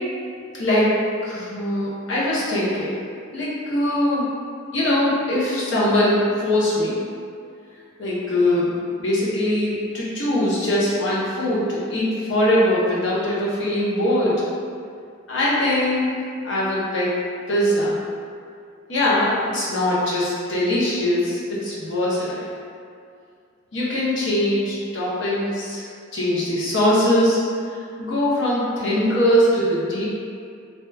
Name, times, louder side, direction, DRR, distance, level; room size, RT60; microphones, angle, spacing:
voice 1, 0.6-0.9 1.2-3.0 3.3-4.3 4.7-7.0 8.0-8.7 9.0-14.4 15.3-17.2 17.5-18.0 18.9-22.5 23.7-25.8 26.1-27.4 28.0-30.0, left 1 dB, 70° left, -7 dB, 0.7 m, -21 dB
2.8 x 2.2 x 2.2 m, 2.3 s
head